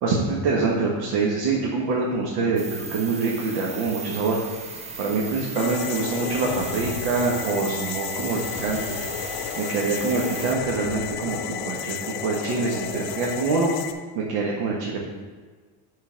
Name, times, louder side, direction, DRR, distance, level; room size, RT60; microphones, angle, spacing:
voice 1, 0.0-4.4 5.0-9.0 9.6-13.7 14.1-15.1, right 3 dB, 75° right, -3 dB, 1.4 m, -25 dB
sound 1, 2.6-10.5, right 4 dB, 15° right, 0.4 m, -36 dB
sound 2, 5.5-13.9, left 8 dB, 60° left, 0.7 m, -32 dB
8.1 x 4.0 x 5.1 m, 1.4 s
cardioid pair, 165°, 40 cm